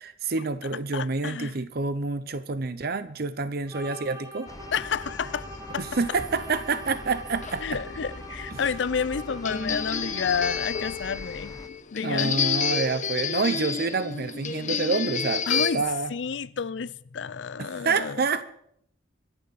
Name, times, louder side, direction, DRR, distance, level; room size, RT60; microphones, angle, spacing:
voice 1, 0.0-4.5 5.8-7.6 8.5-8.6 12.0-16.1 17.8-18.4, right 4 dB, 60° right, 0.8 m, -28 dB
voice 2, 0.9-1.6 4.7-5.5 5.7-5.8 7.6-11.6 11.9-12.4 15.5-18.2, left 6 dB, 80° left, 0.5 m, -30 dB
sound 1, 3.7-11.2, equal, 20° right, 4.5 m, -43 dB
sound 2, 4.5-11.7, left 1 dB, 20° left, 0.7 m, -43 dB
sound 3, 7.4-15.7, left 6 dB, 45° left, 1.0 m, -30 dB
25.0 x 10.5 x 4.2 m
head